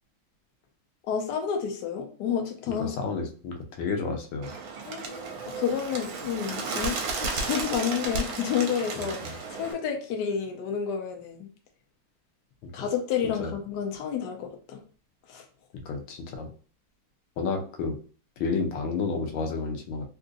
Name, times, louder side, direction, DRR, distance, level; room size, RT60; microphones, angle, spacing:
voice 1, 1.1-2.9 4.8-11.5 12.7-14.8 15.3-15.4, left 7 dB, 65° left, 2 dB, 1.2 m, -30 dB
voice 2, 2.8-4.5 9.0-9.3 12.6-12.7 13.4-13.5 15.8-16.5 17.4-18.0 18.4-20.1, left 4 dB, 85° left, 3 dB, 1.5 m, -31 dB
Bird, 4.4-9.7, right 4 dB, 75° right, 1.4 m, -33 dB
3.7 x 2.6 x 2.5 m, 0.40 s
omnidirectional pair, 2.2 m